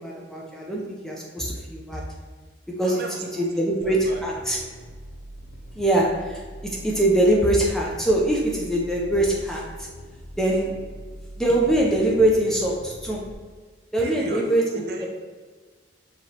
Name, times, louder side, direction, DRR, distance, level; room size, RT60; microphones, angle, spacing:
voice 1, 0.0-2.0 2.8-3.0 3.4-4.6 5.8-9.9 10.4-10.7 11.4-13.2 13.9-15.1, right 1 dB, 5° left, -3 dB, 0.5 m, -23 dB
voice 2, 2.8-3.6 3.9-4.2 14.0-15.1, right 2 dB, 50° right, 2 dB, 0.4 m, -34 dB
sound 1, 3.8-13.3, equal, 65° left, 0.5 m, -42 dB
4.6 x 3.0 x 2.8 m, 1.5 s
head